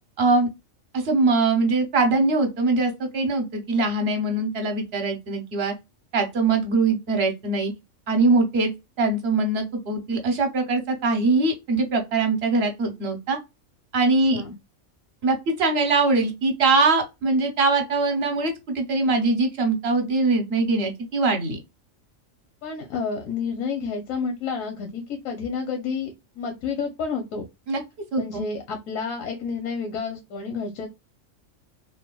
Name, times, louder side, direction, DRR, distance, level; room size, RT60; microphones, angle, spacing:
voice 1, 0.2-0.5 0.9-5.7 6.1-7.7 8.1-8.7 9.0-13.4 13.9-14.4 15.2-21.6 27.7-27.8 28.1-28.4, right 3 dB, 55° right, 0.9 m, -22 dB
voice 2, 14.2-14.5 22.6-27.5 28.2-30.9, left 5 dB, 85° left, 1.1 m, -30 dB
3.4 x 2.2 x 2.2 m
omnidirectional pair, 1.3 m